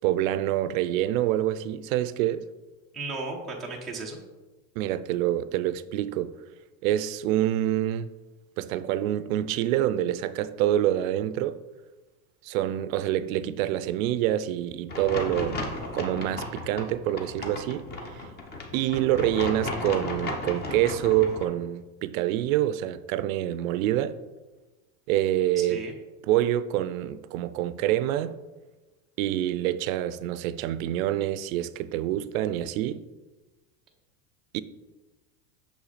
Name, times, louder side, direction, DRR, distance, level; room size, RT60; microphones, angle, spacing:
voice 1, 0.0-2.5 4.8-6.4 6.8-8.1 8.6-11.6 12.4-17.9 18.2-18.3 18.7-24.2 25.1-25.8 26.3-28.4 29.2-33.0 34.5-34.6, right 13 dB, 70° right, 0.5 m, -26 dB
voice 2, 2.9-4.2 25.6-25.9, right 3 dB, ahead, 0.3 m, -35 dB
sound 1, 14.9-21.5, left 2 dB, 25° left, 0.8 m, -35 dB
6.3 x 5.8 x 4.0 m
supercardioid pair, 150°, 43 cm